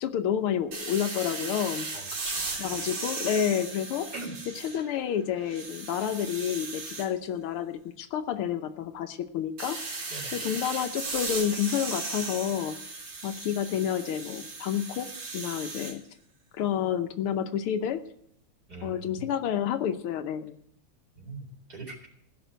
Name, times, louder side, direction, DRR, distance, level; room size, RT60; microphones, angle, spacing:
voice 1, 0.0-1.9 2.6-4.1 4.6-9.8 10.3-12.8 13.2-15.1 15.3-16.0 16.5-18.0 18.8-20.6, left 9 dB, 80° left, 9 dB, 1.7 m, -29 dB
sound 1, 0.7-5.0 5.4-7.1 9.6-16.0, right 3 dB, 85° right, 3.6 m, -36 dB
voice 2, 1.9-2.8 4.1-4.3 10.1-10.4 18.7-19.3 21.1-22.1, right 3 dB, 45° right, 0 dB, 4.3 m, -42 dB
16.0 x 6.1 x 9.2 m, 0.69 s
omnidirectional pair, 2.4 m